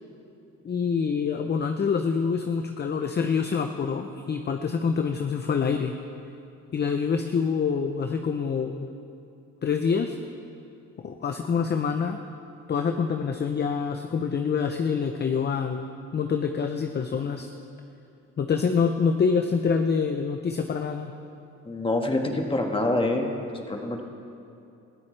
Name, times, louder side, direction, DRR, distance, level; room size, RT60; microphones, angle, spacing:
voice 1, 0.6-5.9 6.7-8.9 9.6-10.2 11.0-12.2 12.7-17.5 18.4-21.1, left 6 dB, 35° left, 6 dB, 0.7 m, -26 dB
voice 2, 21.7-24.0, left 2 dB, 15° left, 2 dB, 1.7 m, -26 dB
20.0 x 13.5 x 3.3 m, 2.7 s
cardioid pair, 90°, 30 cm